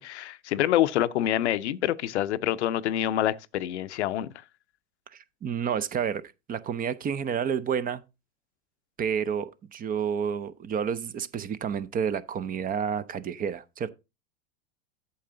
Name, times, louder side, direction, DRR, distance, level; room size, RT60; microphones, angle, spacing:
voice 1, 0.0-4.3, left 12 dB, 85° left, 0.6 m, -26 dB
voice 2, 5.1-6.2 6.5-8.0 9.0-13.9, right 7 dB, 25° right, 0.6 m, -30 dB
8.6 x 6.9 x 3.8 m
hypercardioid pair, 100°, 33 cm